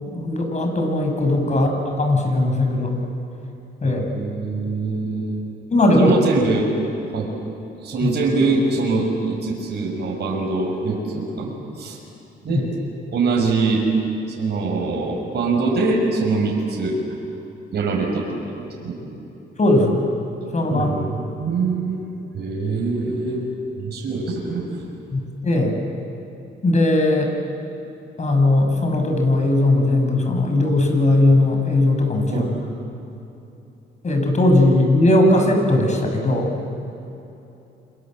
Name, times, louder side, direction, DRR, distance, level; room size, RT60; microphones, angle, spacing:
voice 1, 0.1-2.9 3.8-4.0 5.7-6.1 8.0-8.1 12.5-12.6 19.6-20.0 20.5-20.9 25.1-25.7 26.6-27.3 28.2-32.4 34.0-36.5, left 2 dB, 35° left, 4 dB, 6.4 m, -18 dB
voice 2, 3.8-5.3 6.0-6.7 7.1-7.3 7.8-12.0 12.4-12.7 13.1-13.8 14.4-17.0 17.7-18.3 18.6-18.9 20.7-22.0 22.3-23.4 23.8-24.8 32.3-32.5, right 3 dB, 55° right, -1 dB, 6.4 m, -23 dB
29.5 x 25.5 x 7.7 m, 2.9 s
cardioid pair, 90°, 20 cm